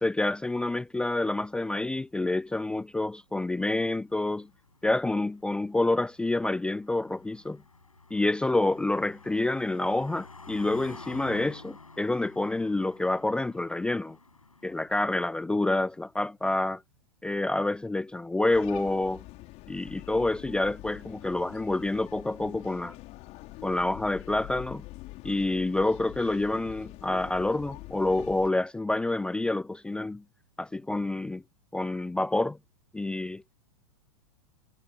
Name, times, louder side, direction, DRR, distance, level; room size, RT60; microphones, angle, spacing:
voice 1, 0.0-4.5 4.8-7.6 8.1-14.2 14.6-16.8 17.2-19.2 19.7-22.9 23.6-24.8 25.2-30.2 30.6-31.4 31.7-32.6 32.9-33.4, left 2 dB, 5° left, 0.5 m, -28 dB
Car passing by, 4.0-14.9, left 3 dB, 85° left, 6.4 m, -49 dB
sound 1, 18.5-28.5, left 20 dB, 40° left, 4.7 m, -45 dB
figure-of-eight pair, 100°, 17 cm